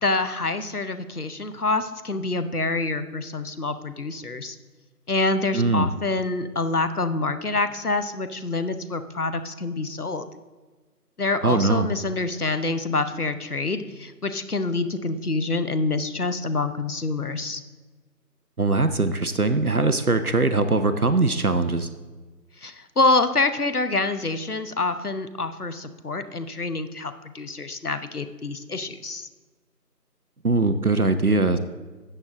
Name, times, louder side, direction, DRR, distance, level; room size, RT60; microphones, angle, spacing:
voice 1, 0.0-4.6 5.1-10.3 11.2-17.6 22.6-29.3, left 3 dB, 65° left, 10 dB, 1.0 m, -26 dB
voice 2, 5.5-5.9 11.4-11.9 18.6-21.9 30.4-31.6, right 3 dB, 65° right, 9 dB, 0.8 m, -21 dB
13.0 x 8.1 x 3.7 m, 1.3 s
figure-of-eight pair, 180°, 49 cm